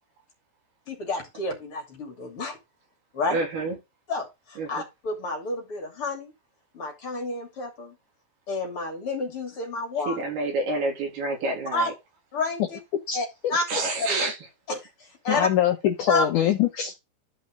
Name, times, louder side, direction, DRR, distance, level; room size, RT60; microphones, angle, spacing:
voice 1, 0.9-2.6 3.1-3.4 4.1-6.3 6.7-7.9 8.5-10.3 11.7-11.9 12.3-12.8 13.1-13.2 13.5-13.6 14.0-14.2 14.7-14.8 15.2-15.5 16.1-16.2, left 2 dB, 35° left, 3.2 m, -29 dB
voice 2, 3.3-3.8 4.6-4.7 10.1-11.9 13.7-14.3, right 2 dB, 70° right, 4.8 m, -28 dB
voice 3, 15.3-16.9, left 11 dB, 85° left, 1.8 m, -23 dB
12.5 x 5.4 x 3.7 m
omnidirectional pair, 4.8 m